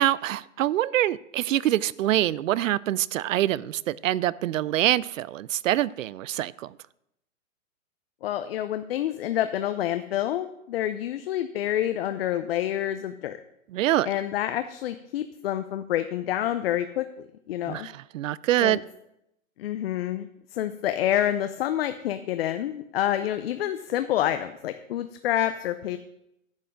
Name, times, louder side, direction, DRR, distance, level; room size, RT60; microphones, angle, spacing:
voice 1, 0.0-6.7 13.7-14.1 17.7-18.8, right 13 dB, 70° right, 0.5 m, -25 dB
voice 2, 8.2-13.4 14.1-17.1 17.5-17.9 18.6-18.8 19.6-26.0, left 12 dB, 45° left, 0.6 m, -28 dB
10.5 x 5.6 x 6.3 m
hypercardioid pair, 145°, 41 cm